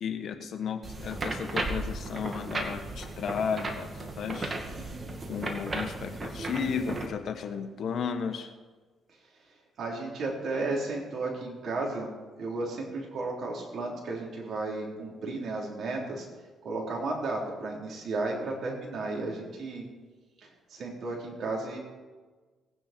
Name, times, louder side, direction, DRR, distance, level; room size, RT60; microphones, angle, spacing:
voice 1, 0.0-4.5 5.3-8.5, left 6 dB, 60° left, 7 dB, 1.4 m, -34 dB
sound 1, 0.8-7.1, right 2 dB, 35° right, 2.1 m, -35 dB
voice 2, 9.8-12.1 12.4-16.3 16.6-19.9 20.4-21.8, right 2 dB, 60° right, -2 dB, 3.9 m, -33 dB
18.5 x 9.9 x 4.6 m, 1.4 s
cardioid pair, 90°, 0 cm